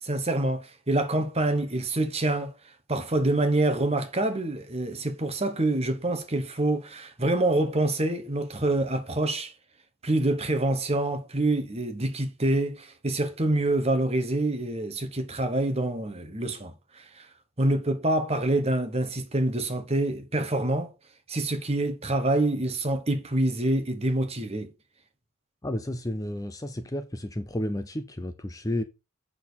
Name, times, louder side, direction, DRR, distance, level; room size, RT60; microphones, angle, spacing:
voice 1, 0.0-2.5 2.9-9.5 10.0-17.3 17.6-20.9 21.3-24.7, right 2 dB, 30° right, 1.2 m, -26 dB
voice 2, 25.6-28.8, left 1 dB, 15° left, 0.6 m, -32 dB
7.6 x 6.4 x 4.1 m
head